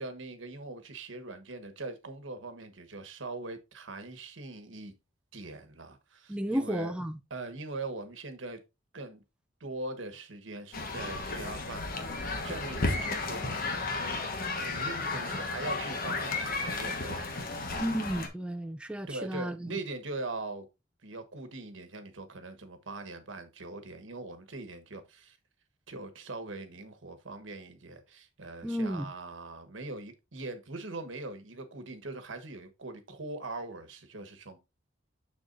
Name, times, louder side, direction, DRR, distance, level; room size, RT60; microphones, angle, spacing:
voice 1, 0.0-4.9 5.3-6.9 7.3-8.6 8.9-9.2 9.6-14.3 14.6-17.3 19.1-20.7 21.0-25.4 25.9-34.6, right 2 dB, 75° right, 1.3 m, -41 dB
voice 2, 6.3-7.2 17.8-19.7 28.6-29.1, equal, 5° right, 0.4 m, -33 dB
sound 1, 10.7-18.3, left 3 dB, 50° left, 1.3 m, -33 dB
7.0 x 6.1 x 2.5 m
head